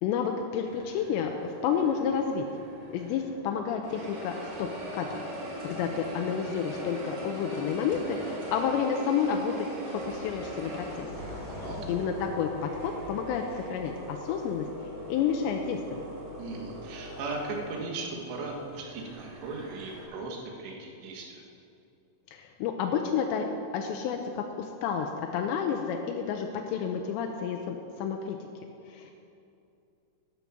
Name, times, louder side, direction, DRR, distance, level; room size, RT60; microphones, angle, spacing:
voice 1, 0.0-2.5 2.9-4.7 4.9-5.2 5.6-11.1 11.9-13.4 13.7-14.7 15.1-16.0 22.3-23.5 23.7-28.4 28.9-29.1, left 7 dB, 85° left, 3 dB, 2.9 m, -30 dB
sound 1, 0.7-3.4 3.8-20.0, right 1 dB, 50° right, 1.3 m, -41 dB
sound 2, 9.0-9.2 9.8-13.6, left 1 dB, 20° left, 3.1 m, -44 dB
voice 2, 16.4-21.4, right 3 dB, 75° right, 0 dB, 3.7 m, -37 dB
12.5 x 9.5 x 6.0 m, 2.6 s
omnidirectional pair, 5.1 m